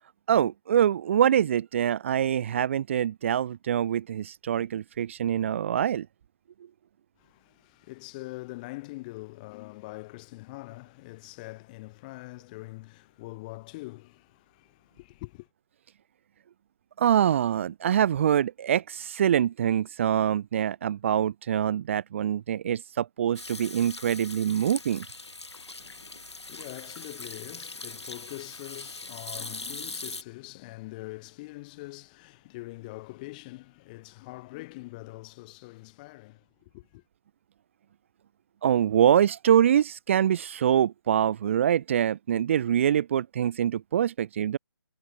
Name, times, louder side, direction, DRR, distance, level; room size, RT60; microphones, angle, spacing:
voice 1, 0.3-6.1 17.0-25.0 38.6-44.6, right 9 dB, 30° right, 1.4 m, -24 dB
voice 2, 7.2-15.5 25.8-37.0, left 22 dB, 20° left, 5.2 m, -43 dB
Hands / Sink (filling or washing), 23.3-30.2, left 3 dB, 85° left, 7.6 m, -41 dB
figure-of-eight pair, 160°, 14 cm